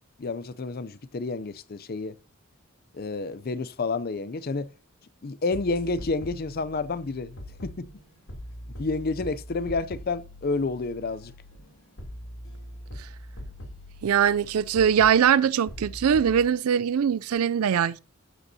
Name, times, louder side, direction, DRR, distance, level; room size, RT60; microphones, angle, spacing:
voice 1, 0.2-2.2 2.9-4.7 5.2-7.9 8.8-11.3, left 3 dB, 45° left, 0.5 m, -30 dB
sound 1, 5.5-16.4, left 1 dB, 70° left, 3.0 m, -43 dB
voice 2, 14.0-18.0, right 8 dB, 85° right, 0.4 m, -22 dB
12.5 x 8.0 x 2.8 m
head